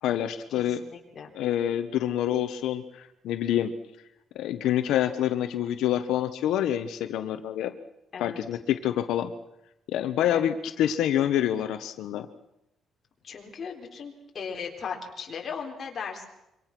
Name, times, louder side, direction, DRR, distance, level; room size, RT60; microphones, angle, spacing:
voice 1, 0.0-0.8 1.3-3.7 4.3-7.7 8.2-9.3 9.9-12.3, left 11 dB, 90° left, 8 dB, 1.1 m, -27 dB
voice 2, 0.8-1.3 8.1-8.4 10.3-10.6 13.2-16.2, left 6 dB, 35° left, 1 dB, 4.1 m, -37 dB
26.0 x 24.5 x 6.1 m, 0.88 s
cardioid pair, 155°, 0 cm